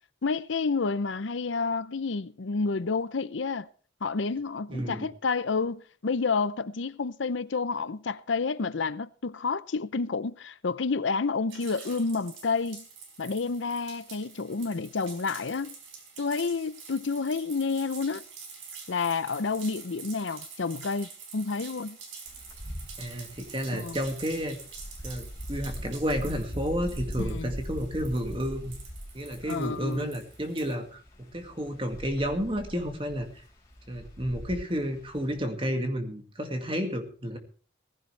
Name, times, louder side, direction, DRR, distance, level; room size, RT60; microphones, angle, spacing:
voice 1, 0.2-3.7 4.0-12.9 13.2-15.7 16.2-18.2 18.9-22.0 23.7-24.0 27.2-27.5 29.5-30.1, left 4 dB, 80° left, 0.7 m, -29 dB
voice 2, 4.7-5.1 23.0-24.6 25.0-28.8 29.1-33.4 33.9-37.4, equal, 30° right, 2.2 m, -31 dB
sound 1, 11.5-30.7, right 5 dB, 85° right, 4.7 m, -47 dB
Wind, 22.3-35.4, equal, 15° left, 5.0 m, -41 dB
18.0 x 15.5 x 3.4 m
head